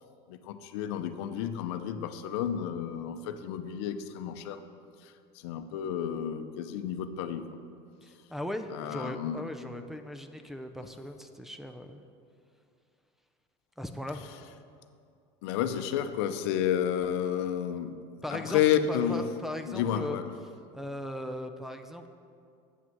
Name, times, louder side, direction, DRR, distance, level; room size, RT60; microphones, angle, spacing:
voice 1, 0.3-4.6 5.0-5.1 5.4-7.5 8.7-9.5 15.4-19.3 19.7-20.3, left 9 dB, 80° left, 9 dB, 0.6 m, -31 dB
voice 2, 8.0-12.0 13.8-14.3 18.2-18.6 18.9-20.2 20.7-22.1, left 1 dB, ahead, 4 dB, 0.4 m, -38 dB
8.2 x 6.0 x 7.7 m, 2.4 s
cardioid pair, 140°, 14 cm